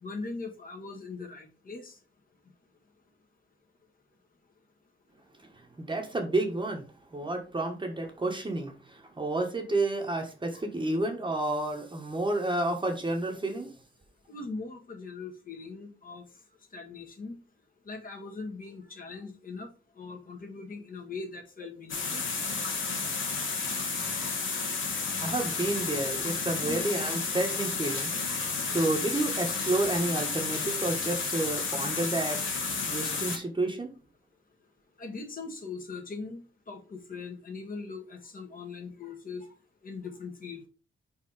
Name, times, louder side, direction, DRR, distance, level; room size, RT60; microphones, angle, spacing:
voice 1, 0.0-1.9 14.3-16.2 16.7-17.3 17.8-19.7 20.0-22.2 26.6-26.9 35.0-39.5 39.8-40.6, left 4 dB, 45° left, 1.7 m, -40 dB
voice 2, 5.8-6.8 7.1-13.7 24.9-28.1 28.6-32.5 32.9-33.9, right 2 dB, 25° right, 1.3 m, -30 dB
sound 1, 21.9-33.4, left 4 dB, 80° left, 1.8 m, -31 dB
4.7 x 4.6 x 4.9 m
wide cardioid pair, 130°, 20 cm